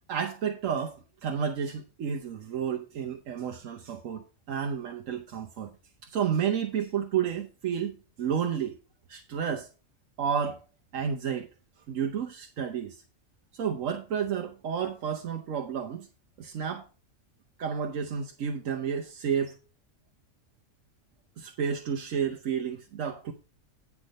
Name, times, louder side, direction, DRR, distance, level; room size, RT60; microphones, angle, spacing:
voice 1, 0.1-5.7 6.0-8.8 9.1-9.7 10.2-10.6 10.9-11.5 11.9-13.0 13.5-16.1 16.4-16.8 17.6-19.6 21.4-23.3, right 7 dB, 85° right, 1.2 m, -31 dB
9.7 x 4.8 x 5.2 m
omnidirectional pair, 1.3 m